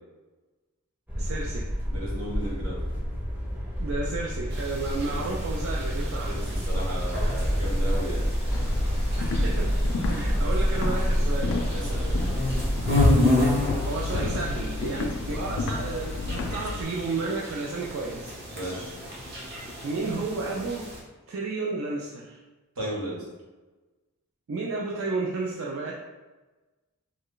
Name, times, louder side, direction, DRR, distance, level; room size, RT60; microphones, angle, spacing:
sound 1, 1.1-13.1, equal, 10° right, 0.5 m, -28 dB
voice 1, 1.2-1.7 3.8-6.4 7.2-7.4 9.2-9.7 10.1-11.6 13.3-18.4 19.8-20.9 21.3-22.4 24.5-25.9, right 3 dB, 65° right, -3 dB, 0.3 m, -32 dB
voice 2, 1.8-2.9 5.1-5.2 6.2-8.3 11.7-12.3 18.5-18.9 22.8-23.2, right 1 dB, 85° right, -5 dB, 1.2 m, -35 dB
sound 2, 4.5-21.0, left 1 dB, 45° right, 0.9 m, -31 dB
sound 3, 8.5-16.8, left 3 dB, 70° left, 0.3 m, -32 dB
3.1 x 2.2 x 3.7 m, 1.2 s
head